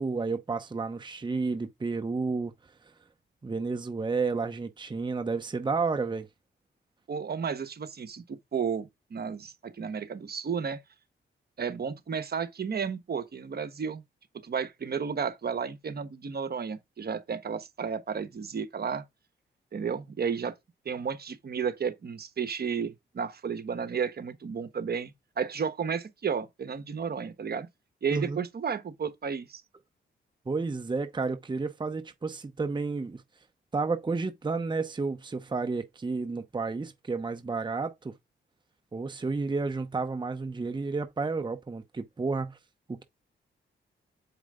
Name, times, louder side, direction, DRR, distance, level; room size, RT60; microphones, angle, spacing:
voice 1, 0.0-2.5 3.4-6.3 28.1-28.4 30.5-33.2 33.7-38.1 38.9-42.6 42.9-43.0, right 4 dB, 25° right, 0.9 m, -31 dB
voice 2, 7.1-10.8 11.6-14.0 14.4-19.0 19.7-20.5 20.8-27.7 28.0-29.6, right 6 dB, 50° right, 1.2 m, -33 dB
7.6 x 4.9 x 3.7 m
cardioid pair, 80°, 20 cm